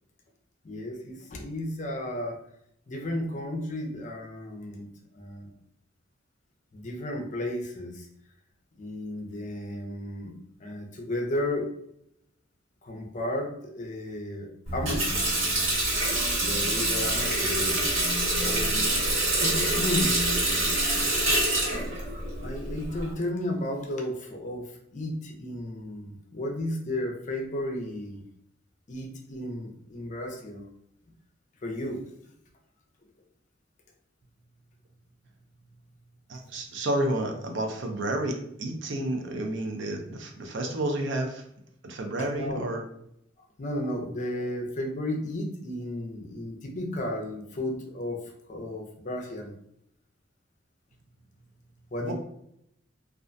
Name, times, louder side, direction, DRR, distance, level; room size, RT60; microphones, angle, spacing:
voice 1, 0.6-2.4 2.9-4.9 5.1-5.5 6.7-8.1 8.8-10.3 10.6-11.7 12.8-15.3 16.4-17.8 18.4-19.0 19.4-20.1 21.0-21.1 22.4-24.6 24.9-28.2 28.9-30.6 31.6-32.0 42.3-42.6 43.6-48.2 48.5-49.5 51.9-52.1, left 1 dB, 40° left, 1 dB, 0.5 m, -33 dB
Water tap faucet, 14.7-23.1, right 1 dB, 90° right, 1.3 m, -26 dB
voice 2, 36.3-41.4 41.8-42.8 52.0-52.1, right 1 dB, 70° right, 3 dB, 0.5 m, -30 dB
2.4 x 2.1 x 2.5 m, 0.75 s
head